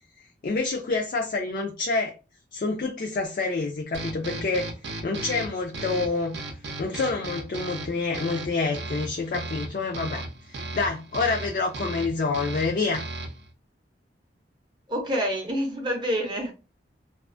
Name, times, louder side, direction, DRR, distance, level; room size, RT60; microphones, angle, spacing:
voice 1, 0.4-2.1 2.5-4.7 5.0-6.4 6.8-10.3 10.7-13.0, left 3 dB, 50° left, 0.3 m, -27 dB
sound 1, 3.9-13.5, right 2 dB, 75° right, 0.5 m, -36 dB
voice 2, 14.9-16.5, equal, 25° right, 0.5 m, -27 dB
2.4 x 2.3 x 2.4 m
head